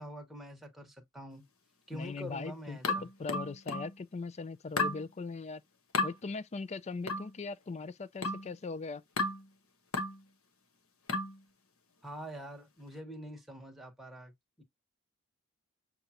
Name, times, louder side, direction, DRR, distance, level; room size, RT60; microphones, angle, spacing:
voice 1, 0.0-1.5 1.9-3.0 12.0-14.3 14.6-14.7, equal, ahead, 1.2 m, -45 dB
voice 2, 1.9-5.6 6.0-9.0, left 4 dB, 30° left, 0.4 m, -40 dB
sound 1, 2.8-4.0 4.8-5.0 5.9-6.2 7.1-7.3 8.2-8.5 9.2-9.5 9.9-10.2 11.1-11.4, left 3 dB, 80° left, 1.1 m, -33 dB
6.6 x 2.4 x 2.8 m
head